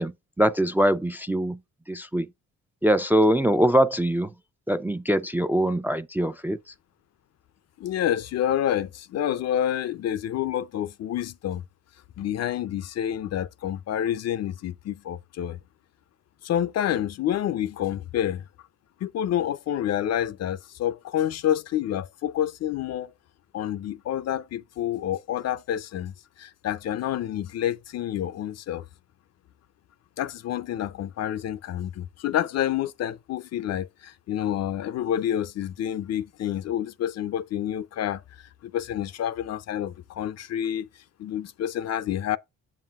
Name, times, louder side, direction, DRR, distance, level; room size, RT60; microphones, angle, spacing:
voice 1, 0.0-1.6 1.9-2.3 2.8-4.3 4.7-6.6, right 1 dB, 5° right, 0.3 m, -23 dB
voice 2, 7.8-11.6 12.2-15.6 16.4-18.4 19.0-23.1 23.5-28.8 30.2-38.2 38.6-40.9 41.2-42.4, left 11 dB, 60° left, 0.5 m, -28 dB
7.6 x 7.1 x 2.4 m
cardioid pair, 90°, 30 cm